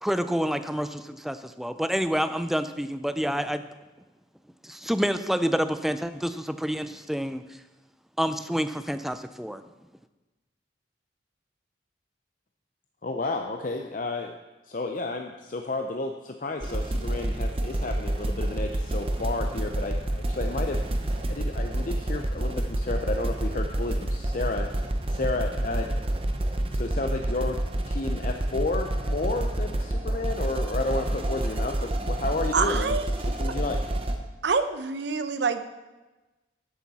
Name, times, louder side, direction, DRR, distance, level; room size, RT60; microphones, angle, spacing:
voice 1, 0.0-3.6 4.6-7.6 8.2-9.6, equal, ahead, 11 dB, 0.4 m, -28 dB
voice 2, 13.0-14.3 14.6-20.8 21.3-25.9 26.7-27.6 27.9-33.0 33.4-33.8, left 2 dB, 45° left, 4 dB, 0.6 m, -32 dB
sound 1, 16.6-34.2, right 1 dB, 30° right, 0.8 m, -28 dB
voice 3, 32.5-33.1 34.4-35.6, right 5 dB, 75° right, 10 dB, 0.7 m, -26 dB
13.0 x 8.5 x 4.2 m, 1.1 s
head